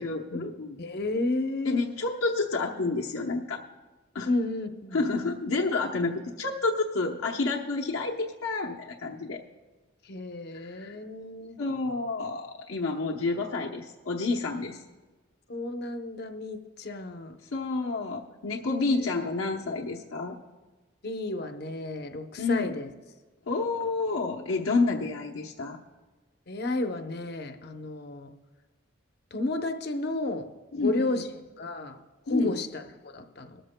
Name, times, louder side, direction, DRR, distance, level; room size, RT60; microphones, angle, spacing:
voice 1, 0.0-0.8 1.6-3.6 4.1-4.3 4.9-9.4 10.6-11.0 11.6-14.8 17.4-20.4 22.4-22.7 23.5-25.8 30.7-31.2 32.3-32.6, left 3 dB, 85° left, -2 dB, 0.8 m, -29 dB
voice 2, 0.8-1.8 4.3-5.0 10.0-11.6 15.5-17.4 18.9-19.1 21.0-22.9 26.5-28.3 29.3-30.5 30.8-31.3 31.6-32.0 32.3-33.6, left 2 dB, 50° left, 6 dB, 0.8 m, -32 dB
20.5 x 13.5 x 2.2 m, 1.3 s
head